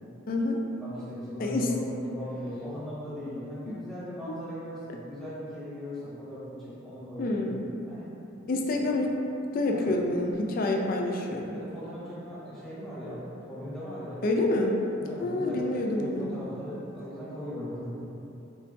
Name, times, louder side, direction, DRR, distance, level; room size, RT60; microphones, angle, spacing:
voice 1, 0.3-0.6 1.4-1.7 3.7-3.8 7.2-7.8 8.5-9.1 9.5-11.6 14.2-14.8 15.2-16.4, left 2 dB, 45° left, 1 dB, 0.3 m, -27 dB
voice 2, 0.8-1.8 2.0-7.4 7.9-8.1 8.4-8.9 9.7-9.9 11.0-14.6 15.0-17.9, equal, ahead, -11 dB, 1.0 m, -39 dB
3.7 x 3.4 x 2.5 m, 2.9 s
head